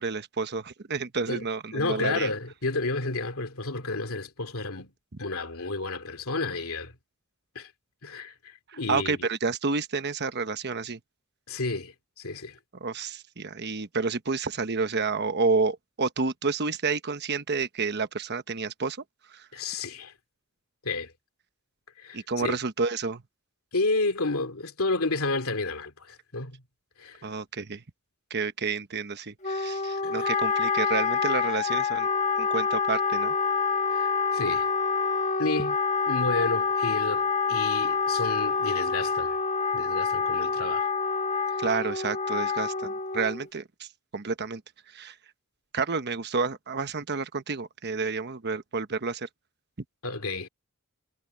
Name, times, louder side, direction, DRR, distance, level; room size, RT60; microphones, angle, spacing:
voice 1, 0.0-2.3 8.9-11.0 12.8-19.0 19.3-19.4 22.1-23.2 27.2-27.8 28.3-32.1 32.4-33.3 41.6-43.9 44.1-44.6 44.9-45.1 45.7-49.3, right 4 dB, 50° right, 1.1 m, -30 dB
voice 2, 1.7-4.9 5.2-6.9 7.5-7.7 8.0-9.3 11.5-12.6 19.5-20.1 20.8-21.1 22.0-22.6 23.7-26.6 27.0-27.3 30.0-30.3 33.9-34.7 35.4-35.8 36.1-39.4 39.7-40.9 41.5-41.6 50.0-50.5, left 3 dB, 75° left, 2.6 m, -31 dB
Wind instrument woodwind instrument, 29.4-43.5, left 5 dB, 35° left, 1.4 m, -27 dB
head